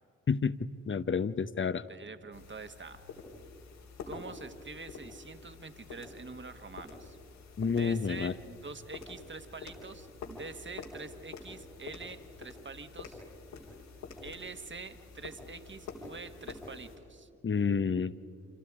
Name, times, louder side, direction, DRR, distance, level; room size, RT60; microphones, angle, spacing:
voice 1, 0.9-1.8 7.6-8.3 17.4-18.1, left 5 dB, 35° left, 14 dB, 1.0 m, -29 dB
voice 2, 1.9-3.0 4.1-7.2 7.6-13.2 14.2-17.3, right 4 dB, 30° right, 9 dB, 1.8 m, -46 dB
sound 1, 2.3-17.0, left 4 dB, 85° left, 4.1 m, -48 dB
29.0 x 27.0 x 5.0 m, 2.5 s
hypercardioid pair, 40°, 35 cm